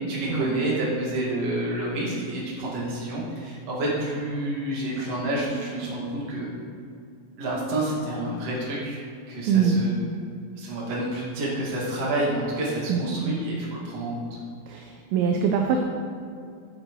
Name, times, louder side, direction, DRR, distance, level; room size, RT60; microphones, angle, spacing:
voice 1, 0.0-6.5 7.4-9.0 9.3-9.9 10.6-14.2, right 1 dB, 45° right, -6 dB, 2.3 m, -29 dB
voice 2, 9.5-9.8 12.9-13.4 14.7-15.8, right 6 dB, 80° right, 3 dB, 2.6 m, -23 dB
11.0 x 7.9 x 3.2 m, 2.3 s
omnidirectional pair, 5.5 m